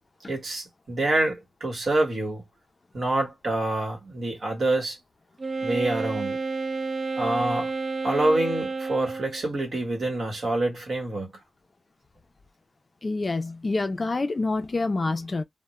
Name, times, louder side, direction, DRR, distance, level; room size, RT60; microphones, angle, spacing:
voice 1, 0.3-2.4 2.9-5.0 5.6-6.4 7.2-7.7 8.0-11.3, right 2 dB, 55° right, 1.2 m, -26 dB
Wind instrument woodwind instrument, 5.4-9.5, right 3 dB, 40° right, 0.4 m, -30 dB
voice 2, 13.0-15.4, left 3 dB, 35° left, 0.4 m, -27 dB
2.3 x 2.1 x 2.9 m
wide cardioid pair, 125°, 0 cm